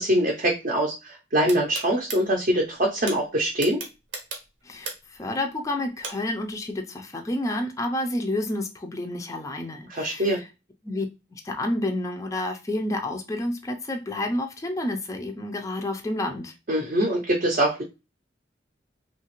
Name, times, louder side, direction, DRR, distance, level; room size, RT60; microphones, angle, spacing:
voice 1, 0.0-3.8 9.9-10.4 16.7-17.8, right 1 dB, 45° right, 0.5 m, -23 dB
sound 1, 1.5-2.2 3.1-3.2 3.6-5.2 6.0-6.1, right 4 dB, 80° right, 0.7 m, -34 dB
voice 2, 4.6-10.5 10.8-11.1 11.3-16.5, left 1 dB, 15° left, 0.3 m, -30 dB
2.8 x 2.4 x 2.9 m
head